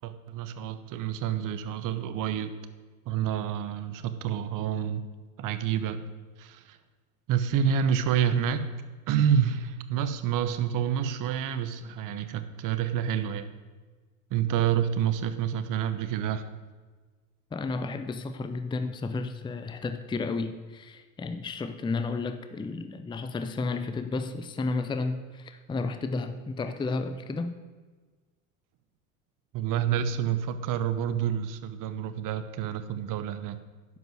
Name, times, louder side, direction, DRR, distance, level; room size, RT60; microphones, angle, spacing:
voice 1, 0.0-2.5 3.1-5.0 5.4-6.0 6.4-6.8 7.3-8.7 9.1-13.5 14.3-16.4 29.5-33.6, right 8 dB, 50° right, 11 dB, 1.0 m, -28 dB
voice 2, 17.5-27.6, left 3 dB, 10° left, 9 dB, 0.6 m, -32 dB
11.0 x 5.3 x 7.9 m, 1.4 s
hypercardioid pair, 95°, 42 cm